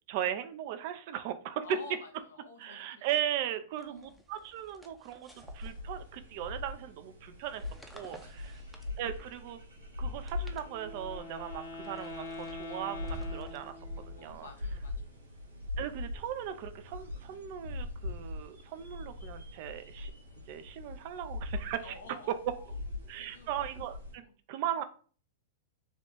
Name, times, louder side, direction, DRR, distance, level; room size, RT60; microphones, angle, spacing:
voice 1, 0.1-1.6 2.6-5.3 5.5-7.6 7.9-8.5 9.0-9.6 10.0-13.7 14.1-14.5 15.8-20.1 20.5-21.9 23.1-24.8, right 11 dB, 50° right, 10 dB, 0.4 m, -38 dB
voice 2, 1.6-3.5 3.8-4.2 8.1-8.7 14.2-15.2 21.8-23.5 24.2-24.3, left 3 dB, 75° left, 4 dB, 0.8 m, -51 dB
sound 1, 3.7-6.5 7.3-9.5 10.1-11.2 11.8-14.7, right 1 dB, 5° right, 0.6 m, -58 dB
sound 2, 5.3-24.1, left 2 dB, 85° right, 1.4 m, -42 dB
Wind instrument woodwind instrument, 10.6-14.3, left 2 dB, 60° left, 1.1 m, -44 dB
3.5 x 2.4 x 3.8 m, 0.41 s
hypercardioid pair, 105°, 0 cm